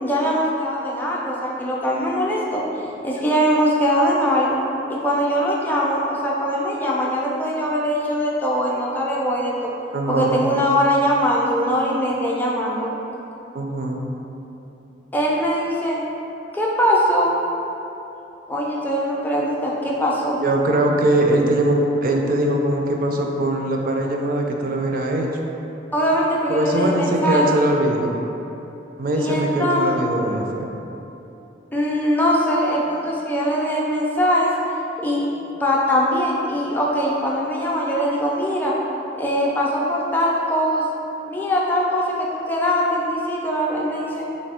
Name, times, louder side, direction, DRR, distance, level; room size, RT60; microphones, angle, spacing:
voice 1, 0.0-2.6 3.0-4.6 4.9-9.7 10.1-12.9 15.1-16.0 16.5-17.4 18.5-20.4 25.9-27.5 29.2-29.9 31.7-34.5 35.0-35.3 35.6-38.7 39.2-40.8 41.3-44.2, equal, 10° left, -4 dB, 0.4 m, -21 dB
voice 2, 9.9-10.4 13.5-14.0 20.3-25.3 26.5-28.1 29.0-30.7, right 1 dB, 50° right, 1 dB, 0.4 m, -21 dB
3.3 x 2.6 x 4.2 m, 2.9 s
head